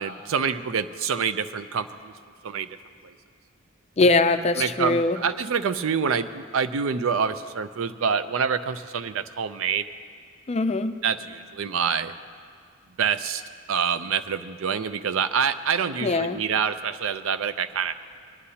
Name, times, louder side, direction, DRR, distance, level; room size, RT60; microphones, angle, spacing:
voice 1, 0.0-2.1 2.4-2.7 3.0-3.1 4.6-9.8 11.0-12.1 13.0-13.4 13.7-18.1, right 6 dB, 70° right, 12 dB, 0.5 m, -26 dB
voice 2, 4.0-5.2 10.5-10.9 16.0-16.4, left 3 dB, 30° left, 9 dB, 0.4 m, -21 dB
21.0 x 11.5 x 2.8 m, 2.2 s
head